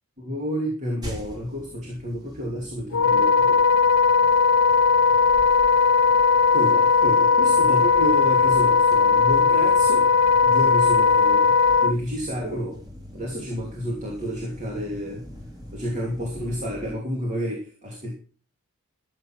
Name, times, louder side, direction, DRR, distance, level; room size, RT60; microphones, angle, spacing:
voice 1, 0.2-3.6 6.5-10.0 10.4-12.8 13.1-15.3 15.7-18.1, equal, 35° right, -1 dB, 2.9 m, -30 dB
sound 1, 1.0-16.9, left 1 dB, 20° right, 3.2 m, -43 dB
Wind instrument woodwind instrument, 2.9-11.9, left 5 dB, 70° left, 0.5 m, -18 dB
14.0 x 8.2 x 4.6 m, 0.40 s
head